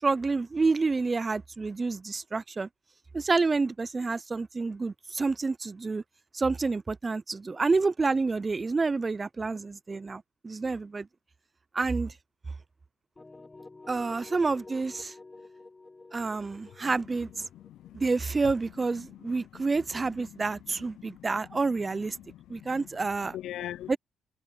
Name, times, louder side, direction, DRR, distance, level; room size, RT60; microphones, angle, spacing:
voice 1, 0.0-2.7 3.1-6.0 6.3-11.1 11.7-12.1 13.9-15.1 16.1-17.5 17.9-22.2 22.5-23.3 23.9-24.0, right 3 dB, 30° right, 0.4 m, -28 dB
sound 1, 13.2-19.0, left 3 dB, 20° left, 0.9 m, -50 dB
voice 2, 17.2-18.1 18.7-23.9, left 12 dB, 85° left, 0.4 m, -45 dB
cardioid pair, 90°, 0 cm